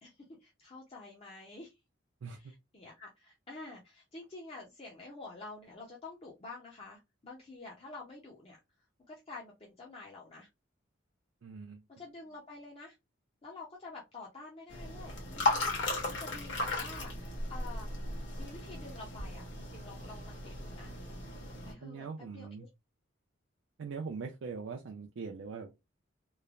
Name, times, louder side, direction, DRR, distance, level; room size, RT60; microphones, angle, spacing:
voice 1, 0.0-1.8 2.4-8.6 9.1-10.5 12.0-13.0 13.4-15.7 16.1-17.9 18.4-20.9 21.7-22.1 22.3-22.7, left 3 dB, 30° left, 0.5 m, -48 dB
voice 2, 11.4-11.8 21.8-22.7 23.8-25.7, right 5 dB, 70° right, 0.4 m, -41 dB
sound 1, 14.7-21.7, left 2 dB, 60° left, 1.2 m, -36 dB
3.1 x 2.0 x 2.3 m
head